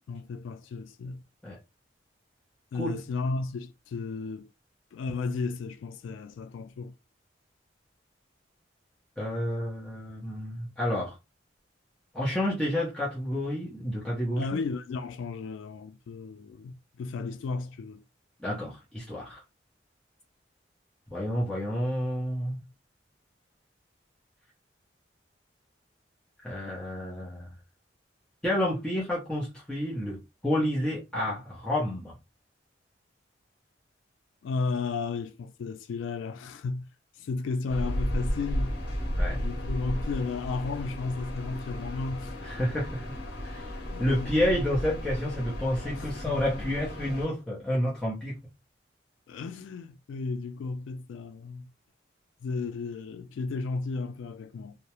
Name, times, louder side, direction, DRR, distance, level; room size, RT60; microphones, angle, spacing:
voice 1, 0.1-1.2 2.7-4.5 4.9-6.9 14.4-18.0 34.4-36.9 37.2-38.8 39.3-42.4 43.9-44.3 45.8-46.7 49.3-51.7 52.4-54.8, left 4 dB, 90° left, 0.3 m, -34 dB
voice 2, 9.2-11.2 12.1-14.6 18.4-19.4 21.1-22.6 26.4-27.5 28.4-32.1 39.2-39.4 42.4-48.4, left 1 dB, 5° left, 0.6 m, -30 dB
sound 1, 37.7-47.3, equal, 65° left, 0.9 m, -34 dB
2.3 x 2.0 x 2.8 m
head